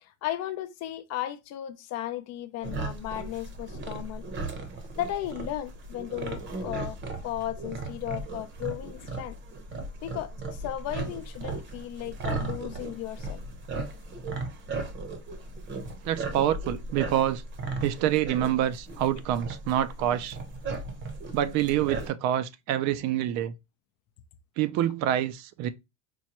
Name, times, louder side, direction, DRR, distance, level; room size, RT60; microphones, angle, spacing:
voice 1, 0.0-4.2 5.0-7.0 7.2-9.4 10.0-13.4, left 13 dB, 45° left, 0.5 m, -35 dB
sound 1, 2.6-22.1, right 3 dB, 30° right, 0.8 m, -36 dB
voice 2, 16.0-17.4 17.8-20.4 21.3-23.5 24.6-25.7, right 11 dB, 50° right, 0.4 m, -26 dB
4.4 x 2.2 x 2.8 m
supercardioid pair, 120°, 36 cm